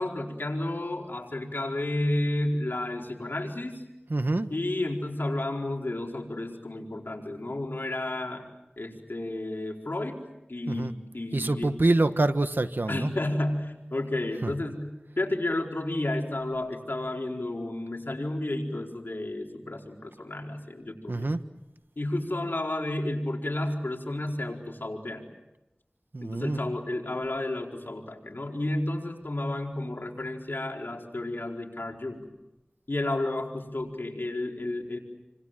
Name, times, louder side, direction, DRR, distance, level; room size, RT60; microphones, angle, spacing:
voice 1, 0.0-3.7 4.5-8.4 8.8-10.2 10.5-11.7 12.9-14.9 15.2-21.3 22.0-25.2 26.2-32.2 32.9-35.0, left 1 dB, 85° left, 1 dB, 4.6 m, -31 dB
voice 2, 4.1-4.5 10.7-10.9 11.3-13.1 14.4-14.5 21.1-21.4 26.1-26.6, right 2 dB, 75° right, 10 dB, 1.4 m, -26 dB
29.5 x 26.0 x 7.7 m, 0.93 s
wide cardioid pair, 45°, 4 cm